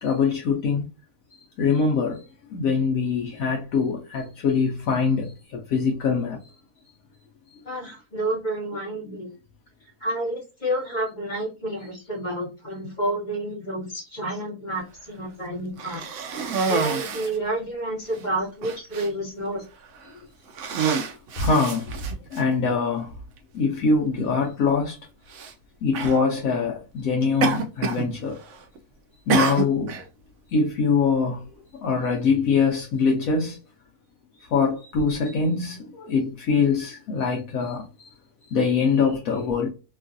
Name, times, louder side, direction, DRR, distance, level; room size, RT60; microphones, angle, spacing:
voice 1, 0.0-0.8 1.6-2.2 2.5-6.4 16.3-16.4 20.8-21.0 21.4-23.1 23.5-25.0 25.8-28.4 29.3-30.0 30.5-31.4 31.8-33.6 34.5-38.1 38.5-39.7, left 5 dB, 70° left, 1.0 m, -23 dB
voice 2, 7.6-9.3 10.0-16.0 16.6-19.6, right 1 dB, 30° left, 1.5 m, -29 dB
Cough, 15.8-17.4 18.1-18.2 18.6-19.1 19.8-20.1 20.5-22.4 23.4-23.5 25.3-25.5 25.9-26.2 27.4-28.1 28.4-28.8 29.3-30.0, right 5 dB, 65° right, 0.8 m, -27 dB
3.0 x 2.4 x 2.6 m
omnidirectional pair, 1.6 m